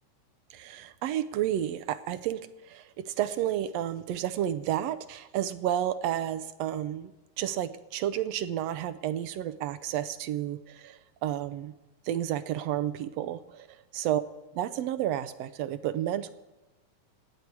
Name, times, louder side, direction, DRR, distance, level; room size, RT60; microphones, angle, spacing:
voice 1, 0.5-11.7 12.0-14.2 14.6-16.3, right 11 dB, 75° right, 12 dB, 1.6 m, -31 dB
26.5 x 9.8 x 4.6 m, 1.1 s
omnidirectional pair, 3.6 m